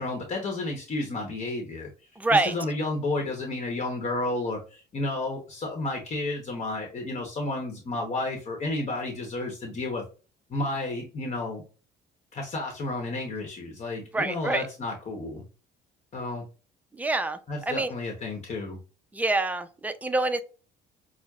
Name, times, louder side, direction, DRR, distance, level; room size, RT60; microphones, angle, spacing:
voice 1, 0.0-1.9 2.3-10.0 10.5-11.6 12.3-15.4 16.1-16.4 17.5-18.8, left 2 dB, 40° left, 1 dB, 1.0 m, -31 dB
voice 2, 2.2-2.5 14.1-14.7 16.9-17.9 19.1-20.4, right 2 dB, 10° right, 9 dB, 0.4 m, -26 dB
6.2 x 2.1 x 2.3 m, 0.35 s
cardioid pair, 110°, 17 cm